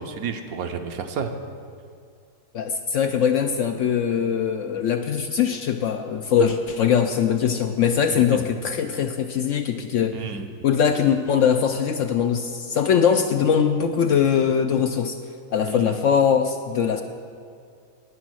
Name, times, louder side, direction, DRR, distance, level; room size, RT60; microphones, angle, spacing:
voice 1, 0.0-1.3 8.1-8.4 10.1-10.5 15.7-15.9, right 6 dB, 70° right, 7 dB, 1.1 m, -31 dB
voice 2, 2.5-10.3 10.6-15.2 15.5-17.0, left 7 dB, 70° left, 6 dB, 0.8 m, -21 dB
9.5 x 9.4 x 6.2 m, 2.3 s
omnidirectional pair, 1.7 m